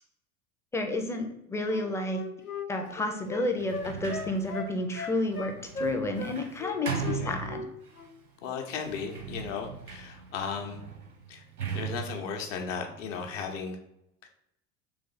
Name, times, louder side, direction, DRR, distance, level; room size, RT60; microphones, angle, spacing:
voice 1, 0.7-2.2 2.7-7.6, left 1 dB, 5° left, 4 dB, 0.4 m, -31 dB
Wind instrument woodwind instrument, 1.7-6.3 6.6-7.7 7.9-8.1, left 3 dB, 90° left, 0.7 m, -37 dB
Sliding door, 3.5-8.1 8.7-13.5, right 6 dB, 90° right, 0.8 m, -39 dB
voice 2, 8.4-10.8 11.3-11.4 11.7-13.8, left 6 dB, 60° left, 4 dB, 0.9 m, -36 dB
3.5 x 3.3 x 4.0 m, 0.80 s
figure-of-eight pair, 75°, 43 cm